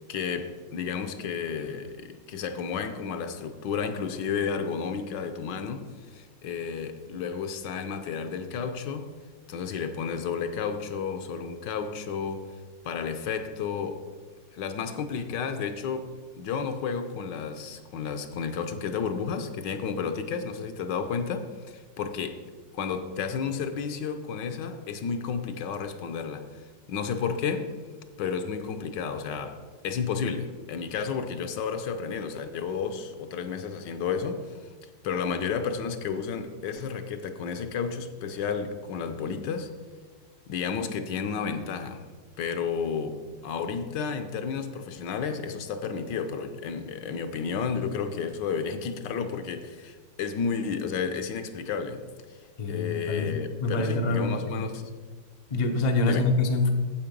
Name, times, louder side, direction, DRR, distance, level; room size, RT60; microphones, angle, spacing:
voice 1, 0.1-9.1 9.5-12.5 12.8-14.0 14.5-16.1 16.4-22.4 22.7-27.7 28.2-29.6 29.8-34.5 35.0-39.7 40.5-42.1 42.4-52.0 52.6-54.9 56.0-56.2, left 6 dB, 75° left, 1.3 m, -32 dB
voice 2, 52.6-54.7 55.5-56.7, left 3 dB, 50° left, 0.5 m, -26 dB
8.7 x 7.7 x 5.2 m
omnidirectional pair, 2.0 m